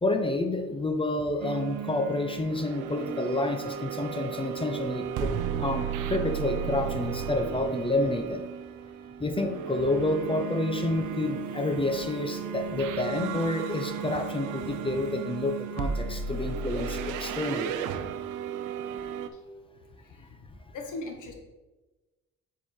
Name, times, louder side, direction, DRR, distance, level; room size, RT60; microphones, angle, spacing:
voice 1, 0.0-5.3 5.6-8.4 9.2-17.7, left 2 dB, 15° left, 5 dB, 0.8 m, -29 dB
sound 1, 1.4-19.3, right 7 dB, 85° right, 0.6 m, -34 dB
voice 2, 19.7-20.5 20.7-21.3, left 2 dB, 85° left, 3 dB, 1.5 m, -40 dB
8.0 x 4.8 x 4.5 m, 1.2 s
cardioid pair, 90°, 30 cm